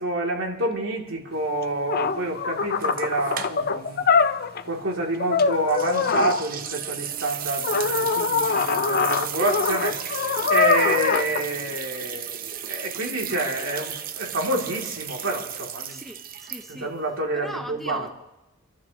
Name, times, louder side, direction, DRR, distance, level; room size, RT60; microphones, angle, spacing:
voice 1, 0.0-4.0 4.6-10.0 10.5-16.0 16.7-18.1, right 2 dB, 75° right, -1 dB, 2.8 m, -28 dB
sound 1, 1.6-4.7 5.2-6.4 7.6-11.4, left 5 dB, 45° left, 0.5 m, -23 dB
sound 2, 2.8-3.9 4.2-4.3 5.7-17.0, right 9 dB, 45° right, 0.7 m, -34 dB
voice 2, 15.9-16.9 17.3-18.1, equal, ahead, 4 dB, 0.7 m, -38 dB
27.0 x 12.0 x 3.0 m, 0.97 s
head